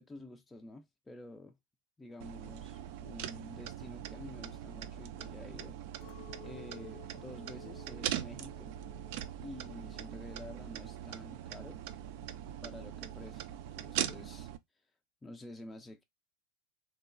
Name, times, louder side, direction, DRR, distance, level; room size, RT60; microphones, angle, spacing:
voice 1, 0.0-1.6 2.0-5.8 6.4-8.8 9.4-11.8 12.6-13.5 13.8-14.5 15.2-16.0, left 1 dB, 15° left, 0.4 m, -49 dB
sound 1, 2.2-14.6, right 11 dB, 60° right, 0.3 m, -41 dB
Chink clink, 6.0-10.4 10.7-11.4, left 9 dB, 70° left, 0.5 m, -56 dB
3.0 x 2.0 x 2.4 m
hypercardioid pair, 95°, 0 cm